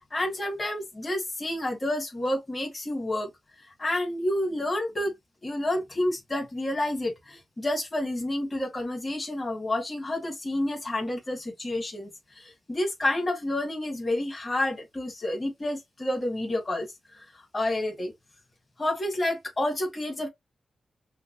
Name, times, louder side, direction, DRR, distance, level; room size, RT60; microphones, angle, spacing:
voice 1, 0.1-3.3 3.6-5.1 5.4-18.1 18.8-20.3, left 1 dB, 35° left, 2.2 m, -29 dB
5.8 x 2.0 x 3.1 m
supercardioid pair, 45°, 0 cm